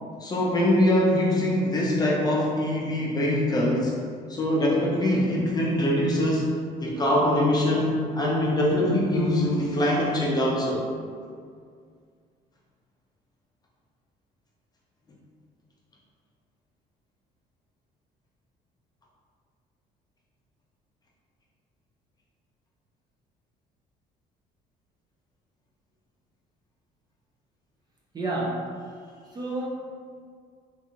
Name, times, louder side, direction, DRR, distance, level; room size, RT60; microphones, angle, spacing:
voice 1, 0.2-4.0 4.3-6.5 6.8-10.8, left 1 dB, 25° left, -4 dB, 0.6 m, -23 dB
voice 2, 28.1-28.9 29.3-29.7, right 2 dB, 25° right, -4 dB, 0.4 m, -30 dB
2.7 x 2.6 x 2.5 m, 2.1 s
cardioid pair, 110°, 17 cm